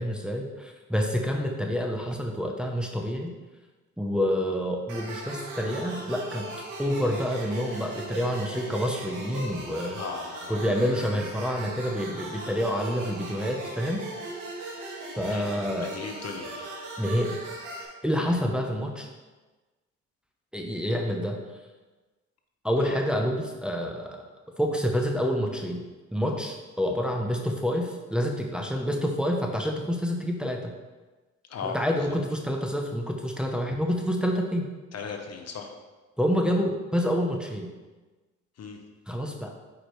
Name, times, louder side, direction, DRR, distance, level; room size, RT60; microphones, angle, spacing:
voice 1, 0.0-3.3 4.0-6.5 6.8-10.0 10.5-14.0 14.8-14.9 15.2-15.9 17.0-17.4 18.0-19.1 20.5-21.6 22.6-24.2 24.6-25.9 26.1-30.7 31.6-34.7 36.2-37.7 39.1-39.5, equal, 5° right, 2 dB, 0.8 m, -28 dB
sound 1, 4.9-17.8, right 2 dB, 85° right, 1.6 m, -39 dB
voice 2, 10.0-10.7 15.2-16.7 18.1-18.3 22.8-22.9 31.5-32.2 34.9-35.7 38.6-38.8, left 5 dB, 55° left, 4 dB, 1.0 m, -38 dB
7.9 x 4.9 x 3.2 m, 1.2 s
cardioid pair, 90°, 30 cm